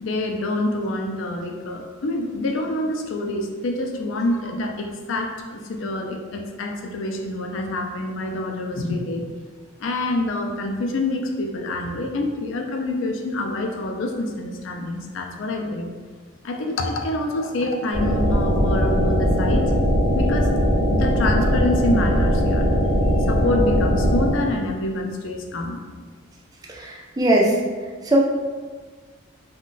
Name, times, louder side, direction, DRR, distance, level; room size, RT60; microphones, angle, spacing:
voice 1, 0.0-9.3 9.8-15.9 16.4-19.7 20.1-20.6 20.9-25.9, left 2 dB, 65° left, 3 dB, 0.4 m, -26 dB
sound 1, 17.9-24.3, equal, 65° right, 0.7 m, -20 dB
voice 2, 26.7-27.6 28.0-28.2, right 1 dB, 20° right, -1 dB, 0.3 m, -20 dB
2.4 x 2.2 x 3.8 m, 1.5 s
head